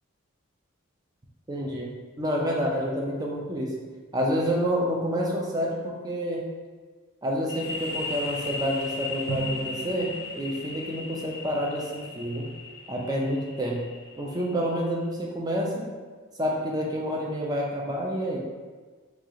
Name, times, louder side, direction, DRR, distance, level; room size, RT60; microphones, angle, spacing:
voice 1, 1.5-1.9 2.2-3.8 4.1-6.4 7.2-12.5 12.9-13.9 14.2-15.9 16.3-18.4, equal, 20° right, -2 dB, 0.4 m, -28 dB
sound 1, 7.5-15.0, left 3 dB, 50° left, 0.5 m, -37 dB
Drum, 9.3-11.0, right 3 dB, 85° right, 0.6 m, -37 dB
3.1 x 2.4 x 3.7 m, 1.4 s
head